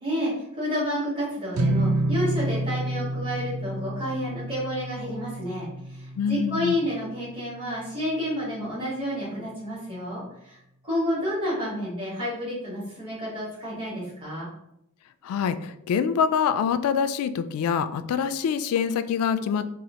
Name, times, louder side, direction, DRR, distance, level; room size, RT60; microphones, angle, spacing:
voice 1, 0.0-14.5, equal, 25° right, -9 dB, 1.4 m, -30 dB
sound 1, 1.5-8.0, right 1 dB, 80° right, 0.5 m, -29 dB
voice 2, 6.2-6.8 15.2-19.7, left 7 dB, 85° left, 13 dB, 0.3 m, -25 dB
4.1 x 2.4 x 2.7 m, 0.82 s
head